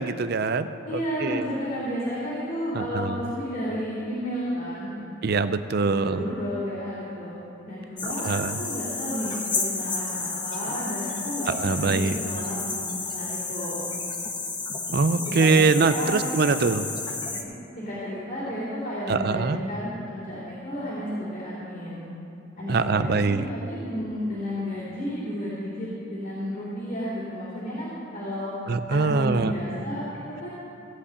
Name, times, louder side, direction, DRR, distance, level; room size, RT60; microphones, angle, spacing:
voice 1, 0.0-1.5 2.7-3.3 5.2-6.3 8.2-8.6 11.5-12.2 14.9-16.9 19.1-19.6 22.7-23.5 28.7-29.5, right 4 dB, 50° right, 11 dB, 0.5 m, -23 dB
voice 2, 0.8-4.9 5.8-7.4 7.7-13.9 15.2-15.5 15.9-16.2 17.2-17.5 17.7-22.1 22.6-28.5 28.9-30.5, equal, 45° left, -11 dB, 3.3 m, -32 dB
sound 1, 8.0-17.4, left 4 dB, 25° left, 1.0 m, -32 dB
16.5 x 5.6 x 8.4 m, 2.8 s
head